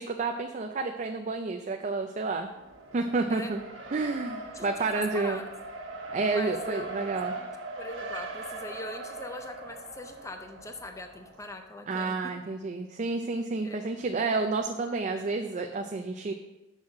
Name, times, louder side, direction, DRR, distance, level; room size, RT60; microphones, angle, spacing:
voice 1, 0.0-2.5 2.9-3.6 3.9-5.4 6.1-7.4 11.9-16.3, right 3 dB, 40° right, 4 dB, 0.4 m, -30 dB
Race car auto racing, 2.5-11.5, right 2 dB, 80° right, 1.3 m, -40 dB
voice 2, 4.5-5.4 6.3-6.9 7.4-7.5 7.8-12.1 13.6-14.3, left 2 dB, 15° left, 5 dB, 0.6 m, -41 dB
6.2 x 5.6 x 6.3 m, 1.0 s
head